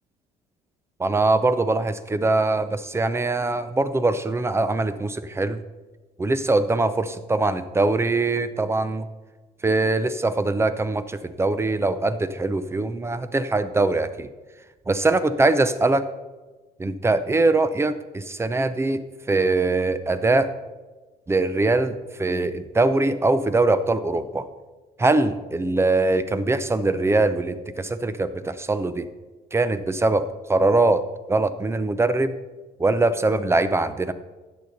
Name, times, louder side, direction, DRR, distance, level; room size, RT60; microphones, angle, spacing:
voice 1, 1.0-5.6 6.2-9.1 9.6-14.3 14.9-16.1 16.8-20.5 21.3-24.5 25.0-29.1 29.5-32.3 32.8-34.1, right 2 dB, 15° right, 13 dB, 0.6 m, -22 dB
13.0 x 8.7 x 4.1 m, 1.2 s
cardioid pair, 110°, 17 cm